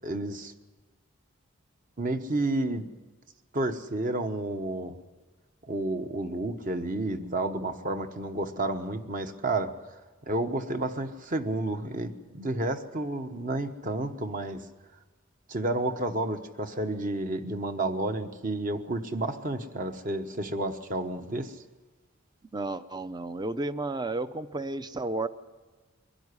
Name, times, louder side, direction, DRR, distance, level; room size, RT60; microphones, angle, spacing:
voice 1, 0.0-0.5 2.0-2.9 3.5-5.0 5.7-9.7 10.3-14.7 15.5-21.6, right 2 dB, 40° right, 7 dB, 1.1 m, -31 dB
voice 2, 22.5-25.3, right 2 dB, 20° right, 13 dB, 0.6 m, -32 dB
22.5 x 12.0 x 9.7 m, 1.3 s
head